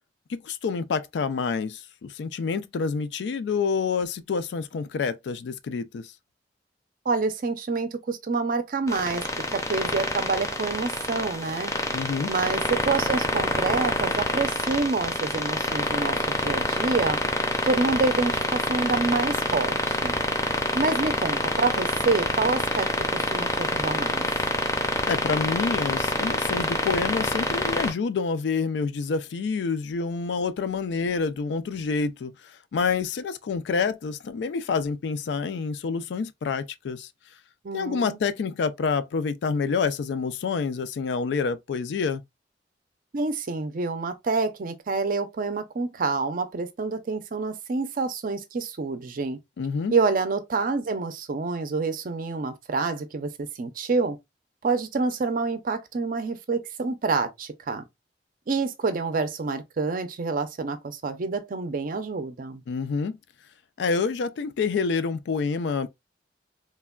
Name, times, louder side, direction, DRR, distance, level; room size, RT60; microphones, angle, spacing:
voice 1, 0.3-6.1 11.9-12.3 25.0-32.3 32.7-37.1 37.7-42.2 49.6-49.9 62.7-63.2 63.8-65.9, left 5 dB, 70° left, 0.3 m, -27 dB
voice 2, 7.1-9.3 9.5-11.7 12.3-17.2 17.6-20.2 20.7-24.3 37.6-38.2 43.1-49.4 49.9-54.2 54.6-57.9 58.5-62.6, right 4 dB, 50° right, 0.5 m, -27 dB
sound 1, 8.9-27.9, left 2 dB, 15° left, 0.5 m, -27 dB
3.2 x 2.1 x 2.3 m
head